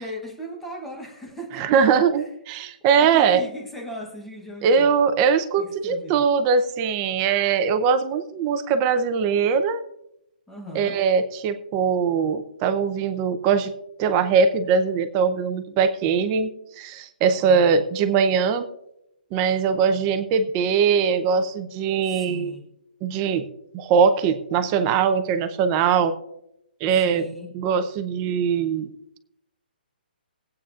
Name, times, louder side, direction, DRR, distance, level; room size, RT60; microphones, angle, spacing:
voice 1, 0.0-1.8 2.9-4.9 5.6-6.3 10.5-11.0 17.4-17.7 22.0-22.7 26.9-27.5, equal, 5° left, 0 dB, 0.9 m, -38 dB
voice 2, 1.5-3.4 4.6-9.8 10.7-13.7 14.0-18.7 19.3-22.5 23.0-23.4 23.7-26.2 26.8-27.3 27.5-28.9, right 6 dB, 15° right, 9 dB, 0.6 m, -21 dB
20.0 x 8.6 x 2.5 m, 0.80 s
hypercardioid pair, 175°, 6 cm